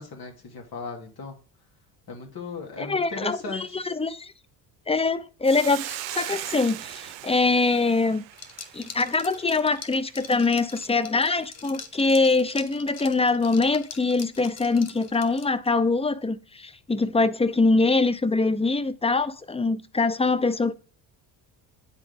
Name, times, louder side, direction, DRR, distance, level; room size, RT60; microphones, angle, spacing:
voice 1, 0.0-1.4 2.1-3.8, left 3 dB, 50° left, 2.5 m, -37 dB
voice 2, 2.8-4.3 4.9-8.2 8.7-20.7, left 3 dB, 15° left, 0.6 m, -23 dB
Hiss, 5.4-10.0, right 15 dB, 65° right, 0.7 m, -38 dB
Liquid, 8.3-15.7, left 6 dB, 30° left, 1.0 m, -43 dB
9.5 x 3.9 x 3.5 m
supercardioid pair, 65°, 48 cm